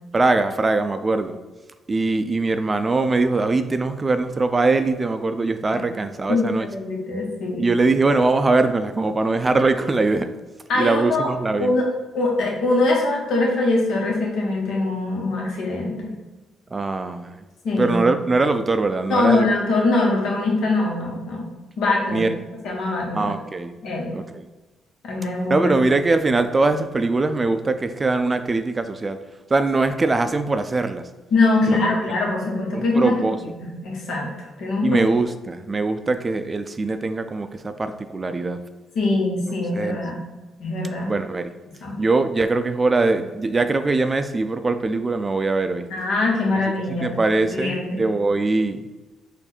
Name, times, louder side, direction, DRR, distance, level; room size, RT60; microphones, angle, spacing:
voice 1, 0.1-1.4 1.9-6.7 7.6-10.3 10.8-11.8 16.7-17.4 17.8-19.5 22.1-22.4 23.1-23.8 24.1-24.4 25.5-29.2 29.5-31.0 31.7-32.1 32.7-33.4 34.8-38.6 39.7-40.0 41.1-41.6 42.0-45.9 46.9-48.9, right 3 dB, 25° right, 9 dB, 0.3 m, -22 dB
voice 2, 6.3-7.7 10.7-11.3 11.6-11.9 12.1-16.1 17.6-18.0 19.1-21.5 21.8-22.2 22.6-23.3 23.8-24.1 25.0-25.8 31.3-33.3 33.6-34.3 34.6-35.0 38.9-40.2 40.6-41.1 41.8-41.9 45.9-47.1 47.5-48.0, left 2 dB, 75° left, -2 dB, 1.3 m, -22 dB
4.5 x 2.6 x 4.2 m, 1.2 s
cardioid pair, 90°, 0 cm